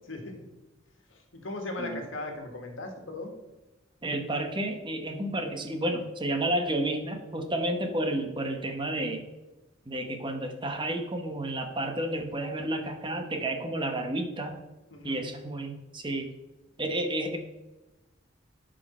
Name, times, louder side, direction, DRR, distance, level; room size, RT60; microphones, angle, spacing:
voice 1, 0.1-0.5 1.1-3.3 14.9-15.3, left 2 dB, 85° left, 4 dB, 1.7 m, -38 dB
voice 2, 4.0-9.3 9.9-14.6 15.0-16.3 16.8-17.4, right 1 dB, 25° right, 5 dB, 1.0 m, -31 dB
11.5 x 5.2 x 4.3 m, 1.0 s
head